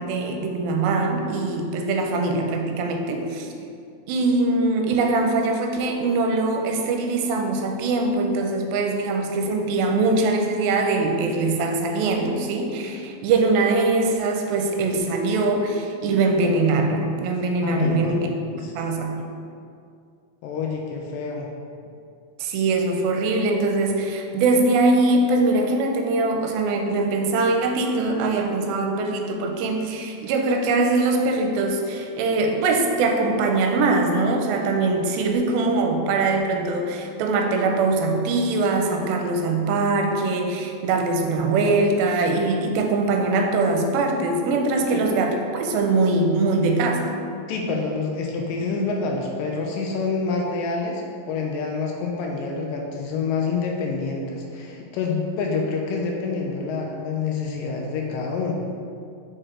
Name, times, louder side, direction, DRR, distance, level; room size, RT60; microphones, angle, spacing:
voice 1, 0.0-3.5 4.1-18.3 18.7-19.3 22.4-47.1, right 3 dB, 85° right, 3 dB, 2.4 m, -22 dB
voice 2, 17.6-18.7 20.4-21.5 44.9-45.0 47.5-58.5, left 4 dB, 80° left, 0 dB, 2.1 m, -27 dB
6.3 x 4.6 x 3.7 m, 2.4 s
omnidirectional pair, 4.3 m